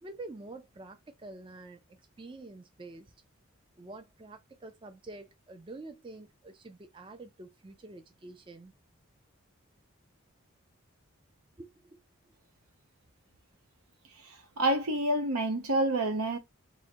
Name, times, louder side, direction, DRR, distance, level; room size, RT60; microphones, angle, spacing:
voice 1, 0.0-3.1 3.8-8.7 11.6-12.0, right 2 dB, 25° right, 0.4 m, -47 dB
voice 2, 14.2-16.4, right 1 dB, 85° right, 0.9 m, -28 dB
3.6 x 2.1 x 4.4 m
head